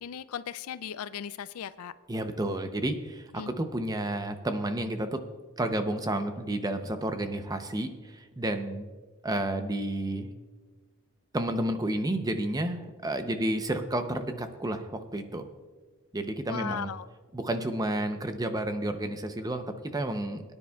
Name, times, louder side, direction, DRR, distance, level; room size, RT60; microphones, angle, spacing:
voice 1, 0.0-1.9 3.4-3.5 16.5-17.1, left 8 dB, 80° left, 15 dB, 0.4 m, -37 dB
voice 2, 2.1-5.2 5.6-8.8 9.2-10.3 11.3-15.5 16.1-16.9 17.3-20.4, right 1 dB, 15° right, 8 dB, 0.7 m, -31 dB
21.5 x 9.9 x 2.3 m, 1.4 s
head